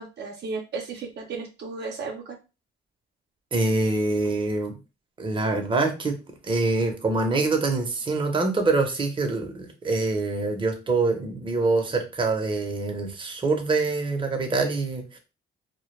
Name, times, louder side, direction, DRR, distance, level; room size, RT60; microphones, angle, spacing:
voice 1, 0.0-2.4, right 4 dB, 60° right, 2 dB, 0.6 m, -34 dB
voice 2, 3.5-4.8 5.2-6.1 6.5-15.2, right 3 dB, 25° right, 3 dB, 0.7 m, -25 dB
2.2 x 2.1 x 3.0 m, 0.29 s
cardioid pair, 90°, 20 cm